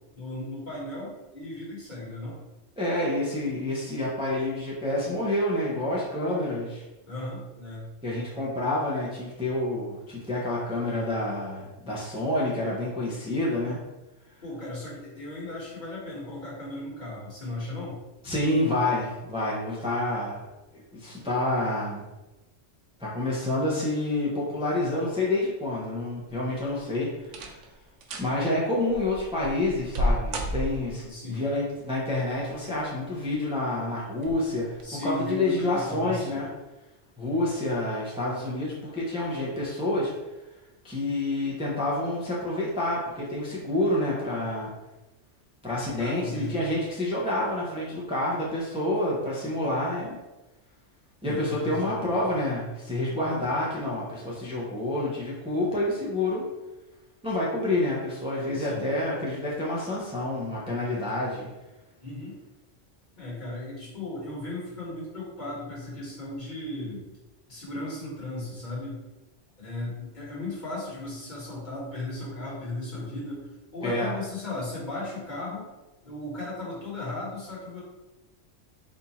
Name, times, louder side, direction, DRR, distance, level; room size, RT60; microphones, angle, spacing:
voice 1, 0.1-2.4 7.0-7.9 14.4-18.0 31.0-31.5 34.8-36.4 46.0-46.5 51.2-52.1 58.5-58.9 62.0-62.4 63.1-67.1 67.5-69.0 69.6-75.7 76.0-77.8, left 2 dB, 40° left, -7 dB, 1.6 m, -36 dB
voice 2, 2.8-6.9 8.0-13.8 18.2-20.4 20.9-22.0 23.0-27.6 28.2-36.5 37.2-40.1 40.8-44.7 45.6-50.2 51.2-56.4 57.2-61.5 73.8-74.2, left 1 dB, 5° right, -6 dB, 0.7 m, -28 dB
sound 1, 26.3-26.8 27.2-27.7 28.0-28.3 28.9-31.1 32.3-32.9 33.3-33.4 34.2-34.4 34.8-34.9, equal, 85° right, 1.0 m, -31 dB
4.3 x 2.7 x 4.2 m, 1.0 s
omnidirectional pair, 1.2 m